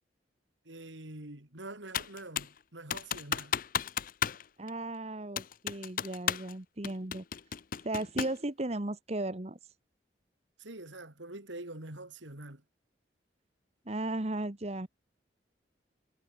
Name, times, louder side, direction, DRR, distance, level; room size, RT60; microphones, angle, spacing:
voice 1, 0.6-3.5 10.6-12.6, right 2 dB, 90° right, 4.0 m, -45 dB
Computer keyboard, 1.9-2.6 2.9-4.4 4.7-4.8 5.4-6.5 6.8-8.4, left 8 dB, 50° left, 0.6 m, -33 dB
voice 2, 4.6-7.2 7.8-9.6 13.8-14.9, right 2 dB, 35° right, 1.2 m, -35 dB
head